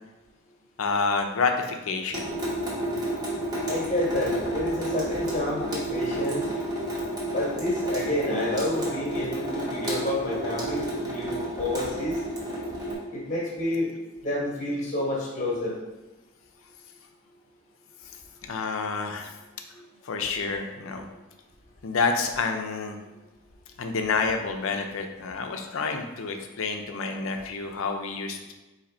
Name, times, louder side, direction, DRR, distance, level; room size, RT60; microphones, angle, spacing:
voice 1, 0.8-2.3 18.4-19.3 20.0-21.1 21.8-23.0 23.8-28.5, left 4 dB, 70° left, 5 dB, 0.5 m, -28 dB
Water tap faucet / Sink (filling or washing) / Drip, 2.1-12.9, right 1 dB, 20° right, 0.8 m, -31 dB
voice 2, 3.6-6.4 7.3-12.2 13.1-13.9 14.2-15.7 19.7-19.8, left 1 dB, 35° left, -3 dB, 1.1 m, -29 dB
3.9 x 2.8 x 4.2 m, 1.1 s
head